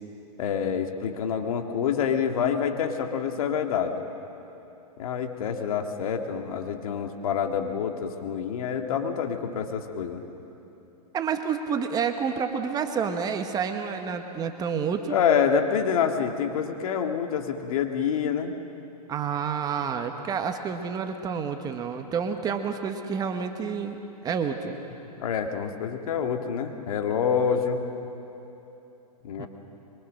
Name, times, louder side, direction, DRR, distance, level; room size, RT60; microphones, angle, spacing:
voice 1, 0.4-4.0 5.0-10.2 15.1-18.5 25.2-27.9 29.2-29.5, left 7 dB, 60° left, 5 dB, 2.0 m, -27 dB
voice 2, 11.1-15.2 19.1-24.7 29.4-29.5, right 6 dB, 20° right, 6 dB, 1.1 m, -29 dB
23.5 x 23.5 x 6.4 m, 3.0 s
hypercardioid pair, 135°, 20 cm